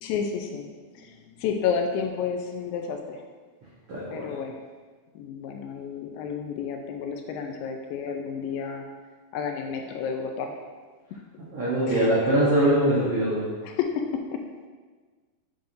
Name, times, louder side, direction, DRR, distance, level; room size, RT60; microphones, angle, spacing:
voice 1, 0.0-3.2 4.1-4.5 5.2-8.9 9.3-10.6 11.9-12.1 13.6-14.4, left 6 dB, 80° left, 4 dB, 2.2 m, -31 dB
voice 2, 3.9-4.3 11.5-13.4, right 1 dB, 75° right, -8 dB, 1.3 m, -22 dB
8.0 x 5.2 x 2.6 m, 1.4 s
omnidirectional pair, 4.3 m